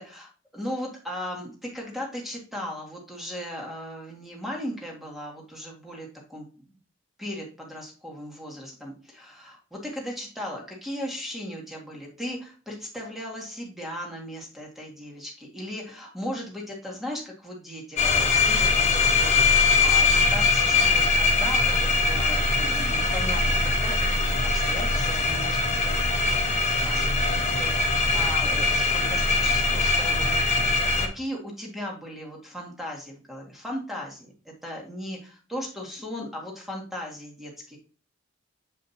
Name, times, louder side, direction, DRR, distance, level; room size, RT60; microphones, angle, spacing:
voice 1, 0.0-6.8 7.2-26.0 26.3-37.8, equal, ahead, -1 dB, 1.8 m, -37 dB
sound 1, 18.0-31.1, left 3 dB, 35° left, 1.3 m, -22 dB
7.5 x 4.9 x 2.7 m, 0.38 s
head